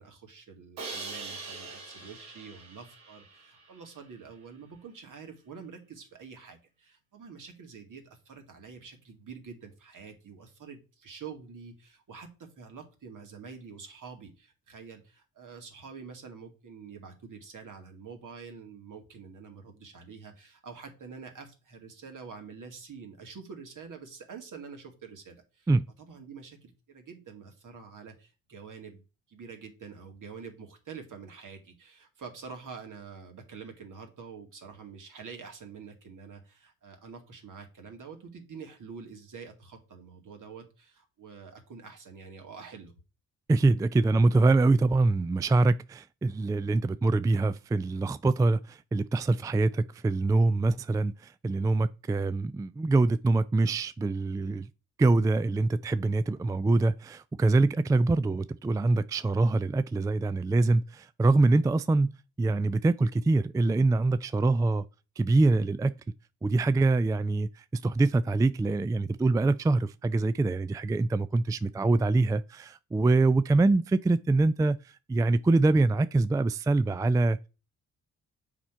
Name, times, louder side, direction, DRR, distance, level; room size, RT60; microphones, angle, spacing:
voice 1, 0.0-25.7 26.0-42.9, right 5 dB, 60° right, 2.2 m, -46 dB
Crash cymbal, 0.8-3.8, right 3 dB, 90° right, 2.0 m, -42 dB
voice 2, 43.5-54.7 55.0-64.9 65.2-66.0 66.4-77.4, right 3 dB, 10° right, 0.3 m, -24 dB
7.1 x 4.4 x 4.5 m
supercardioid pair, 50°, 35 cm